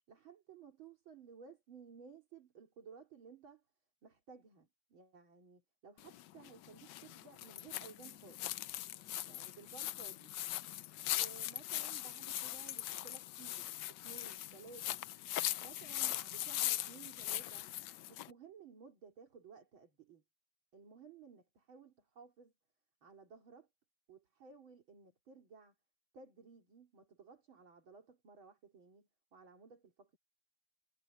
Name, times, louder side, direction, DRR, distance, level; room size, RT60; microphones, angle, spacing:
voice 1, 0.1-3.6 4.0-8.5 9.3-10.3 11.1-15.0 15.6-17.7 18.1-20.2 20.7-22.5 23.0-23.7 24.1-25.7 26.1-30.2, right 5 dB, 70° right, 3.8 m, -57 dB
sound 1, 6.0-18.3, left 14 dB, 70° left, 1.1 m, -40 dB
omnidirectional pair, 2.3 m